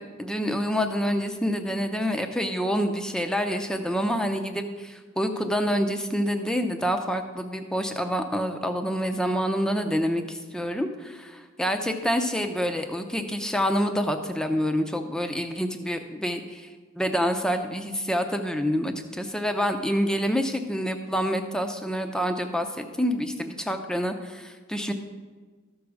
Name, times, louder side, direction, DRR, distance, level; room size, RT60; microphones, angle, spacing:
voice 1, 0.2-16.7 17.0-24.9, equal, 5° left, 6 dB, 0.6 m, -27 dB
13.5 x 4.7 x 6.4 m, 1.4 s
head